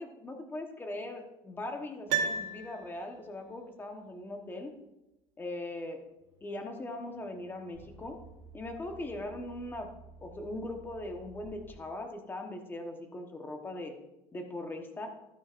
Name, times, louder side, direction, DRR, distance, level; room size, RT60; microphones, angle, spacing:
voice 1, 0.0-4.7 5.4-6.0 6.4-8.2 8.5-9.9 10.2-13.9 14.3-15.1, left 1 dB, 15° left, 4 dB, 1.1 m, -40 dB
Piano, 2.1-3.3 3.6-3.7, right 6 dB, 75° right, 1.0 m, -33 dB
sound 1, 6.2-11.7, right 3 dB, 30° right, 3.0 m, -54 dB
11.5 x 9.5 x 2.5 m, 0.94 s
cardioid pair, 150°, 12 cm